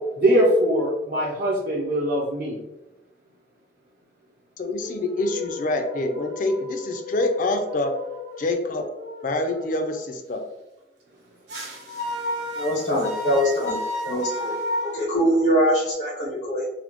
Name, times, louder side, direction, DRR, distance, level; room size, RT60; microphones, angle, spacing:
voice 1, 0.2-2.6, right 1 dB, 55° right, -5 dB, 0.6 m, -21 dB
voice 2, 4.6-7.9 8.4-8.8 9.2-10.4, left 2 dB, 50° left, 6 dB, 0.5 m, -26 dB
sound 1, 4.8-10.0 11.5-15.9, left 1 dB, 75° right, 0.9 m, -33 dB
voice 3, 12.6-13.8 14.0-14.6 14.8-16.6, equal, 80° left, -6 dB, 0.9 m, -23 dB
4.1 x 2.1 x 2.9 m, 0.96 s
head